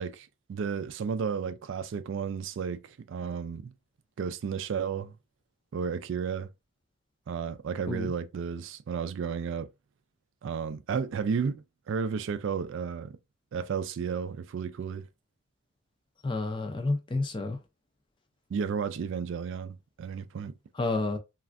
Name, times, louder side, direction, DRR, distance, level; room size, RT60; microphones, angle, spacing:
voice 1, 0.0-3.7 4.2-5.1 5.7-6.5 7.3-9.7 10.4-13.2 13.5-15.1 18.5-20.5, right 6 dB, 60° right, 0.3 m, -33 dB
voice 2, 16.2-17.6 20.7-21.2, left 2 dB, 25° left, 0.4 m, -30 dB
3.2 x 2.4 x 2.5 m
head